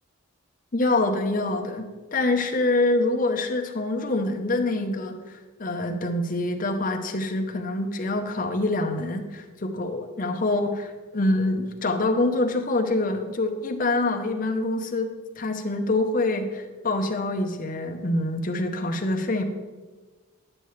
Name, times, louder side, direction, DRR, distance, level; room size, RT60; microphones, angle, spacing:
voice 1, 0.7-19.4, left 2 dB, 40° left, 4 dB, 0.7 m, -25 dB
9.9 x 6.8 x 3.2 m, 1.3 s
head